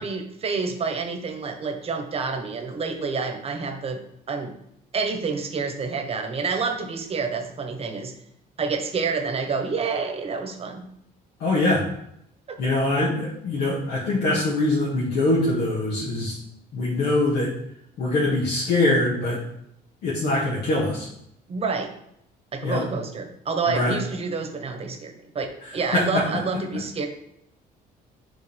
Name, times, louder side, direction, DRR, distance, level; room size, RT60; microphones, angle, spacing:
voice 1, 0.0-4.5 4.9-8.1 8.6-10.9 12.5-12.6 21.5-21.9 22.5-25.5 25.7-27.1, right 4 dB, 35° right, 5 dB, 1.1 m, -28 dB
voice 2, 11.4-11.8 12.6-16.4 16.7-17.5 18.0-19.4 20.0-21.1 22.6-22.8 23.7-23.9 25.9-26.2, left 2 dB, 70° left, -6 dB, 1.8 m, -23 dB
9.6 x 3.8 x 3.5 m, 0.76 s
cardioid pair, 110°, 17 cm